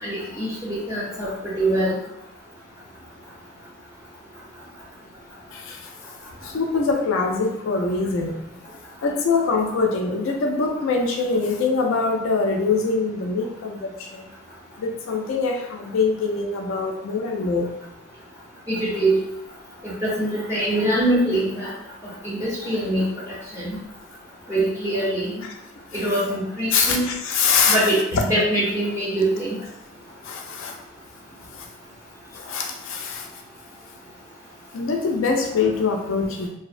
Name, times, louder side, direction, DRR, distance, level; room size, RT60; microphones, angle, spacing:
voice 1, 0.0-1.9 18.7-19.1 19.8-21.7 22.2-23.1 23.5-23.8 24.5-25.3 25.9-27.1 27.7-29.6, right 1 dB, 15° right, -12 dB, 0.9 m, -23 dB
voice 2, 6.4-8.4 9.0-14.2 14.8-17.7 25.9-26.0 26.7-27.8 28.1-28.2 30.3-30.7 32.5-33.3 34.7-36.5, left 4 dB, 60° left, 2 dB, 0.4 m, -23 dB
2.6 x 2.0 x 2.4 m, 0.84 s
head